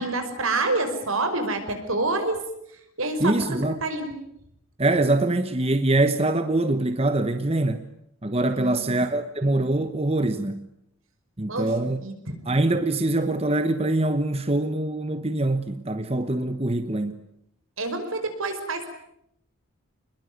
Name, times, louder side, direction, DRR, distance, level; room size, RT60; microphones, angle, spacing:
voice 1, 0.0-2.4 3.0-3.4 3.8-4.1 8.5-8.9 11.5-12.4 17.8-18.9, right 2 dB, 75° right, 5.6 m, -27 dB
voice 2, 3.2-3.8 4.8-7.8 8.2-10.7 11.4-12.0 12.5-17.2, right 2 dB, 25° right, 1.1 m, -24 dB
28.0 x 21.5 x 9.5 m
head